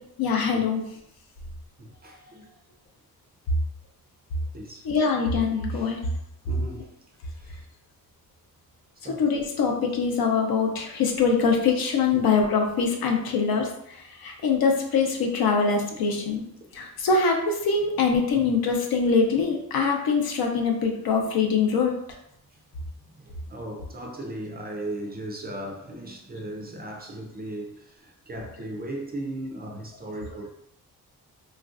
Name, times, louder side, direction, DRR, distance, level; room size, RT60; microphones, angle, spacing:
voice 1, 0.2-0.8 4.8-6.0 9.1-16.4 16.7-21.9, left 5 dB, 70° left, 0.7 m, -23 dB
voice 2, 1.8-2.5 4.5-4.9 5.7-6.0 6.5-6.9 7.3-7.6 9.0-9.2 12.1-12.2 15.9-16.1 16.6-16.7 18.3-18.6 23.2-30.5, right 1 dB, 25° right, 0.4 m, -37 dB
3.1 x 2.5 x 2.4 m
wide cardioid pair, 160°, 37 cm